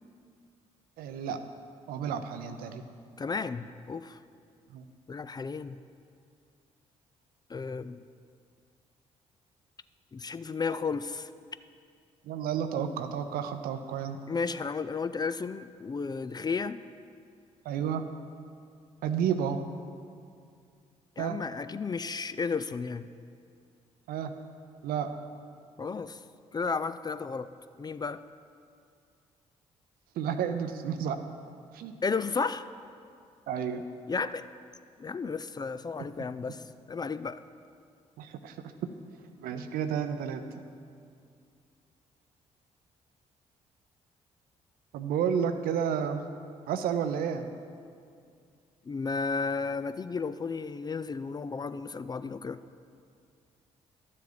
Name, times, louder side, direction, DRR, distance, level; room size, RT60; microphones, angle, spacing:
voice 1, 1.0-1.4 1.9-2.8 4.7-4.9 12.3-14.2 17.6-18.1 19.0-19.6 21.2-21.4 24.1-24.4 24.8-25.1 30.2-31.2 31.7-32.0 33.5-33.8 38.2-38.6 39.4-40.4 44.9-46.2 46.7-47.5, right 8 dB, 70° right, 8 dB, 0.6 m, -31 dB
voice 2, 3.2-4.2 5.1-5.8 7.5-8.0 10.1-11.3 14.3-16.8 21.2-23.1 25.8-26.2 26.5-27.5 27.8-28.2 32.0-32.7 34.1-34.5 35.0-37.4 48.9-52.6, left 4 dB, 25° left, 13 dB, 0.4 m, -33 dB
11.5 x 7.4 x 4.0 m, 2.3 s
hypercardioid pair, 45°, 16 cm